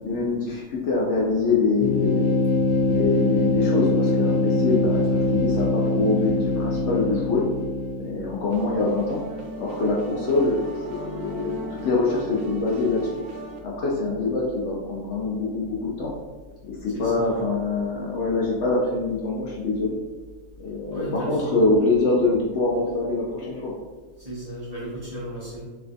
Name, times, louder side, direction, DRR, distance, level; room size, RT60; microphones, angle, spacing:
voice 1, 0.0-2.3 2.9-7.4 8.0-9.2 9.6-10.6 10.9-13.1 13.6-16.1 16.7-19.9 20.6-23.7, left 3 dB, 65° left, -4 dB, 0.8 m, -24 dB
sound 1, 1.8-8.4, left 2 dB, 90° left, 1.1 m, -23 dB
sound 2, 8.5-13.6, right 2 dB, 90° right, 1.1 m, -37 dB
voice 2, 16.9-17.4 20.9-21.6 24.2-25.6, right 1 dB, 30° right, -9 dB, 1.0 m, -35 dB
3.3 x 3.2 x 2.5 m, 1.3 s
omnidirectional pair, 1.5 m